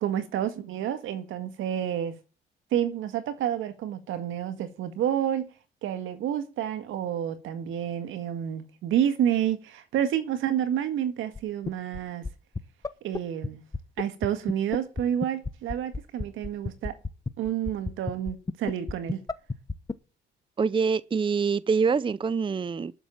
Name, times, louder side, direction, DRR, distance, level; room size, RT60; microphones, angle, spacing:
voice 1, 0.0-2.1 2.7-5.5 5.8-12.3 13.0-13.6 14.0-17.0 17.4-19.2, right 10 dB, 85° right, 1.9 m, -29 dB
sound 1, 11.4-11.5 11.7-12.0 12.2-12.3 12.6-12.7 12.8-12.9 13.1-13.2 13.4-13.5 13.7-19.9, left 3 dB, 20° left, 0.9 m, -29 dB
voice 2, 20.6-22.9, right 5 dB, 25° right, 0.6 m, -25 dB
12.0 x 7.2 x 8.7 m
cardioid pair, 90°, 20 cm